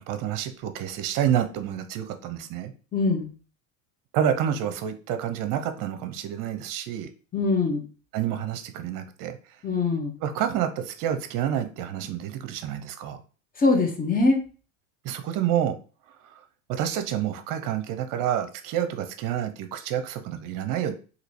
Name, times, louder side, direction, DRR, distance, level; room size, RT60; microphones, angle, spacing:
voice 1, 0.0-2.7 4.1-7.1 8.1-9.4 10.2-13.2 15.0-15.8 16.2-16.3 16.7-20.9, right 10 dB, 50° right, 8 dB, 0.7 m, -28 dB
voice 2, 2.9-3.3 7.3-7.8 9.6-10.1 13.6-14.4, left 3 dB, 20° left, 4 dB, 0.9 m, -22 dB
3.0 x 2.9 x 4.0 m, 0.37 s
hypercardioid pair, 100°, 42 cm